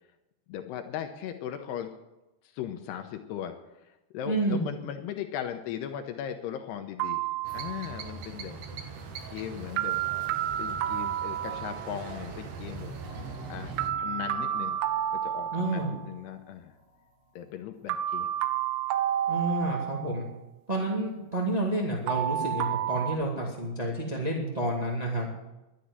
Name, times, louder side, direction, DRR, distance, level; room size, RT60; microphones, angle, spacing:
voice 1, 0.5-1.9 2.4-3.6 3.8-7.2 7.5-8.6 9.3-10.0 10.6-12.9 13.5-14.8 15.2-16.8 17.4-18.3, left 10 dB, 85° left, 6 dB, 2.9 m, -38 dB
voice 2, 4.2-4.6 15.5-15.9 19.3-20.3 20.7-25.3, right 1 dB, 30° right, -2 dB, 0.7 m, -29 dB
sound 1, 7.0-8.1 9.8-12.1 13.8-16.1 17.9-20.2 22.1-23.1, right 11 dB, 90° right, 2.9 m, -30 dB
sound 2, 7.4-13.9, right 4 dB, 60° right, 2.8 m, -41 dB
sound 3, 13.0-17.3 17.6-17.7 18.3-18.4, left 1 dB, 5° right, 3.3 m, -51 dB
12.0 x 10.0 x 9.5 m, 1.0 s
omnidirectional pair, 4.8 m